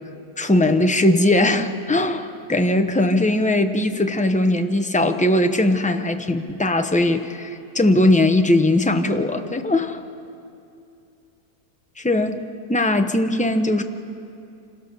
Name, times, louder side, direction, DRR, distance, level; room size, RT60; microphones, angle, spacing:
voice 1, 0.4-10.0 12.0-12.4 12.7-13.8, left 1 dB, 10° left, 6 dB, 0.5 m, -19 dB
27.0 x 17.0 x 6.8 m, 2.6 s
omnidirectional pair, 1.7 m